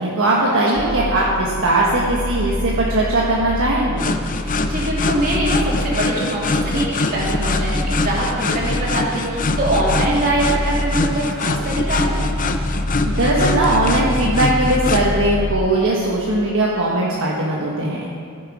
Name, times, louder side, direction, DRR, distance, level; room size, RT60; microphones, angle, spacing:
voice 1, 0.0-4.0 13.1-18.1, right 2 dB, 60° right, -4 dB, 1.3 m, -19 dB
sound 1, 0.8-15.6, left 1 dB, 15° right, 1.3 m, -26 dB
sound 2, 4.0-15.0, left 3 dB, 40° left, 0.6 m, -24 dB
voice 2, 4.3-12.1, right 1 dB, 40° right, -5 dB, 3.0 m, -23 dB
15.0 x 7.6 x 4.9 m, 2.4 s
head